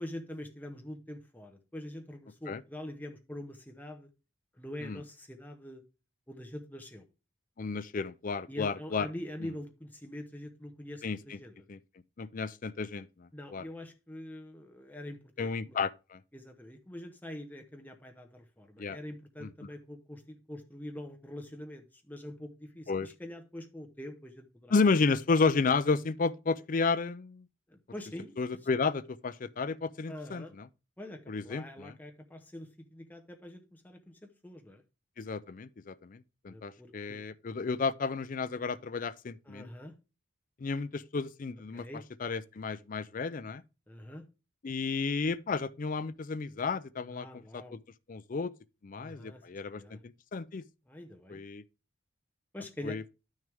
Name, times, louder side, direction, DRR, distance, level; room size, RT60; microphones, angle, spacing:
voice 1, 0.0-4.1 4.6-5.8 6.3-7.0 8.5-11.7 13.3-15.8 16.3-24.7 27.7-28.3 30.1-30.5 31.0-34.8 36.5-37.2 39.5-39.9 41.7-42.0 43.9-44.2 47.1-47.8 49.0-49.4 49.7-50.0 50.9-51.4 52.5-53.0, left 1 dB, 10° left, 0.8 m, -44 dB
voice 2, 7.6-9.1 11.0-11.4 11.7-11.8 12.2-13.6 15.4-16.2 18.8-19.0 19.4-19.5 22.9-23.1 24.7-27.4 28.4-30.7 31.3-31.9 35.2-39.7 40.6-41.9 42.2-43.6 44.6-47.8 48.1-48.5 48.8-50.6 51.3-51.6 52.8-53.1, left 4 dB, 40° left, 0.4 m, -32 dB
10.5 x 6.4 x 3.4 m
head